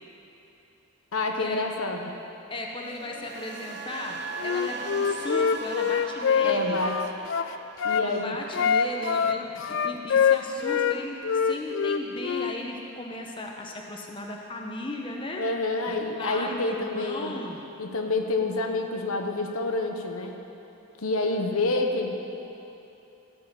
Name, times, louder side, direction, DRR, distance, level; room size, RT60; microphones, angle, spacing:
voice 1, 1.1-2.1 6.4-7.0 7.8-8.4 9.2-9.3 15.4-17.3 17.8-20.4 21.0-22.2, left 2 dB, 75° left, 3 dB, 0.9 m, -28 dB
voice 2, 2.5-6.8 7.9-15.4 15.9-17.6, left 1 dB, 20° left, 0 dB, 0.8 m, -36 dB
sound 1, 2.8-10.9 11.2-11.5, right 4 dB, 50° right, 0.5 m, -40 dB
Wind instrument woodwind instrument, 4.4-8.1 8.5-11.0 11.2-12.6, left 7 dB, 55° left, 0.3 m, -24 dB
15.5 x 5.6 x 7.4 m, 3.0 s
head